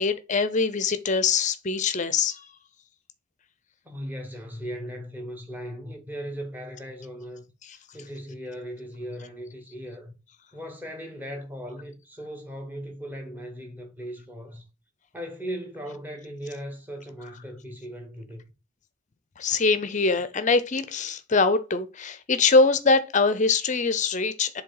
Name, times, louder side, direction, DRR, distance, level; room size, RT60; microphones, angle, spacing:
voice 1, 0.0-2.4 19.4-24.6, left 4 dB, 35° left, 0.5 m, -23 dB
voice 2, 3.8-7.4 7.7-10.1 10.5-14.6 15.1-18.4, equal, 10° right, 1.1 m, -38 dB
7.5 x 3.3 x 3.9 m
head